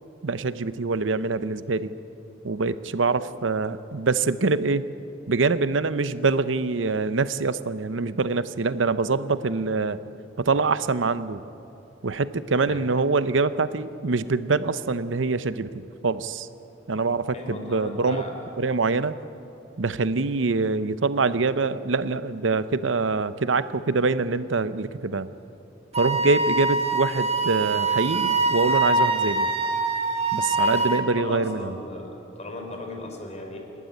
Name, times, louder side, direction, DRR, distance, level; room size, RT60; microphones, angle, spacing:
voice 1, 0.2-1.9 2.4-4.8 5.3-10.0 10.4-11.4 12.0-16.5 16.9-18.2 18.6-19.2 19.8-25.3 26.0-29.5 30.3-31.7, right 3 dB, 80° right, 14 dB, 0.8 m, -24 dB
voice 2, 17.3-18.3 30.6-33.6, left 1 dB, 35° left, 3 dB, 3.7 m, -37 dB
Wind instrument woodwind instrument, 25.9-31.1, right 3 dB, 35° right, 1.6 m, -24 dB
27.5 x 12.0 x 9.6 m, 2.8 s
head